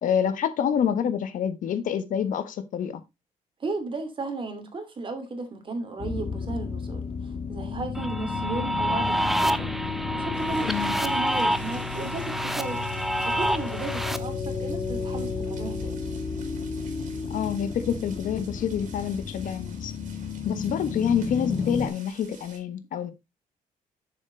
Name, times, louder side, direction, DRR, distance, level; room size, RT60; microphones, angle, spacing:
voice 1, 0.0-3.0 10.7-11.0 17.3-19.9 20.4-23.1, left 8 dB, 70° left, 1.3 m, -27 dB
voice 2, 3.6-9.7 10.1-12.9 13.2-16.0, right 3 dB, 40° right, 2.8 m, -35 dB
sound 1, 6.0-21.9, left 5 dB, 45° left, 1.7 m, -33 dB
sound 2, 7.9-14.2, equal, ahead, 0.7 m, -28 dB
sound 3, 10.3-22.6, right 5 dB, 65° right, 3.3 m, -51 dB
7.0 x 6.9 x 3.9 m
cardioid pair, 95°, 14 cm